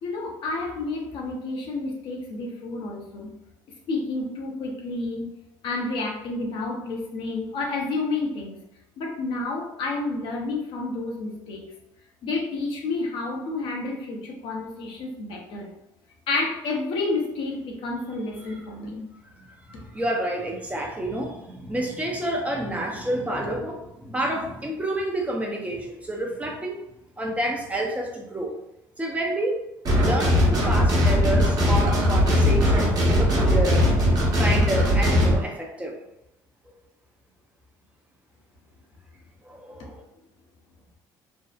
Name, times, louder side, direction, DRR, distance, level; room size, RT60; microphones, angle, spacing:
voice 1, 0.0-3.3 3.9-5.3 5.6-8.6 9.0-11.7 12.2-15.7 16.3-19.1, left 3 dB, 65° left, -1 dB, 0.6 m, -30 dB
voice 2, 19.4-26.8 27.2-28.6 29.0-29.6 29.9-33.9 34.4-36.0 36.7-36.8 39.4-40.0, right 1 dB, 15° right, 0 dB, 0.5 m, -29 dB
sound 1, 29.9-35.4, left 1 dB, 45° right, 0.9 m, -19 dB
2.6 x 2.0 x 2.4 m, 0.86 s
supercardioid pair, 85°, 9 cm